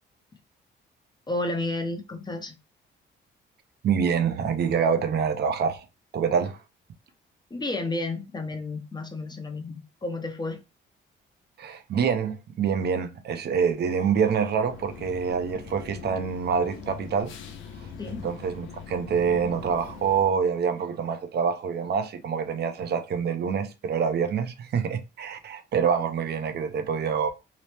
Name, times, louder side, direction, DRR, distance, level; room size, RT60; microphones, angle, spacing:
voice 1, 1.3-2.5 7.5-10.6 18.0-18.2, left 2 dB, 20° left, 0.6 m, -31 dB
voice 2, 3.8-5.9 6.1-6.6 11.6-17.3 18.1-27.3, right 6 dB, 55° right, 0.6 m, -26 dB
sound 1, 14.5-20.3, left 6 dB, 80° left, 0.5 m, -42 dB
2.9 x 2.0 x 3.2 m
cardioid pair, 90°, 20 cm